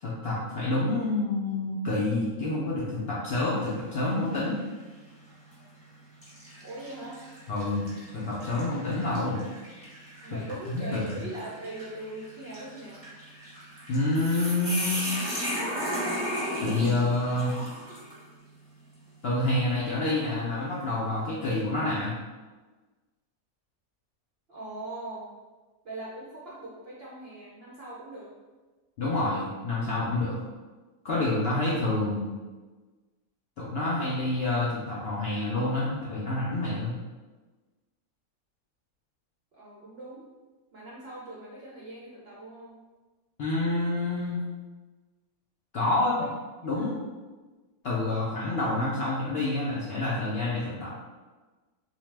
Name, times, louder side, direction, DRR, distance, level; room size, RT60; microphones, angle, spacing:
voice 1, 0.0-4.6 7.5-9.4 10.3-11.1 13.9-15.2 16.6-17.5 19.2-22.2 29.0-30.4 31.0-32.3 33.6-37.0 43.4-44.4 45.7-46.1 46.6-47.0 47.8-50.9, left 2 dB, 70° left, -7 dB, 0.6 m, -28 dB
sound 1, 3.3-3.8 4.3-4.4 5.4-5.6 6.2-18.2, equal, 10° right, 0.8 m, -36 dB
voice 2, 6.6-7.2 10.2-13.0 24.5-25.3 25.8-28.3 39.5-40.3 40.7-42.8 45.9-46.3 46.8-47.0, right 2 dB, 65° right, -6 dB, 0.6 m, -41 dB
2.7 x 2.1 x 3.2 m, 1.3 s
omnidirectional pair, 1.5 m